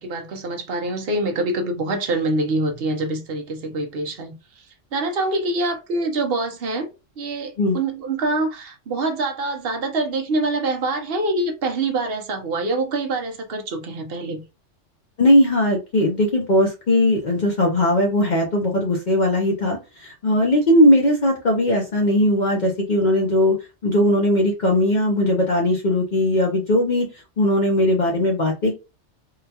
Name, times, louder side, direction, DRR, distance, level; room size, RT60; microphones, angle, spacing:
voice 1, 0.0-4.6 4.9-6.9 7.2-14.4, right 2 dB, 55° right, 0.8 m, -25 dB
voice 2, 15.2-23.6 23.8-27.1 27.4-28.7, left 1 dB, 45° left, 0.7 m, -19 dB
3.8 x 2.2 x 2.8 m
omnidirectional pair, 1.3 m